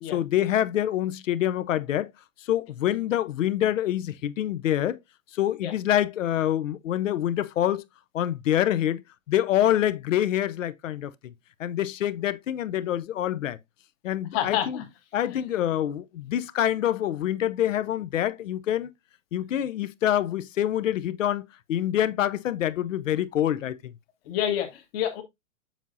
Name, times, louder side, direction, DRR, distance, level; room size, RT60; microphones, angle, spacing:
voice 1, 0.1-2.1 2.5-5.0 5.3-7.8 8.1-9.0 9.3-11.3 11.6-13.6 14.0-14.8 15.1-18.9 19.3-21.4 21.7-23.9, left 11 dB, 65° left, 0.7 m, -26 dB
voice 2, 14.3-14.8 15.3-15.4 24.2-25.2, left 10 dB, 45° left, 1.5 m, -28 dB
7.2 x 5.7 x 2.6 m
hypercardioid pair, 115°, 41 cm